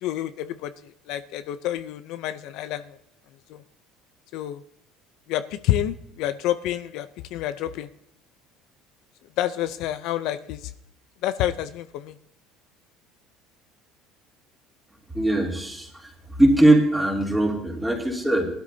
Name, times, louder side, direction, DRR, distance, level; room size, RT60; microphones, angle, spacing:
voice 1, 0.0-3.0 3.5-3.6 4.3-4.6 5.3-7.9 9.4-10.7 11.2-12.2, left 12 dB, 65° left, 11 dB, 0.5 m, -28 dB
voice 2, 15.1-16.1 16.4-18.5, right 1 dB, 5° right, -1 dB, 3.0 m, -20 dB
20.0 x 12.5 x 2.8 m, 0.73 s
cardioid pair, 140°, 0 cm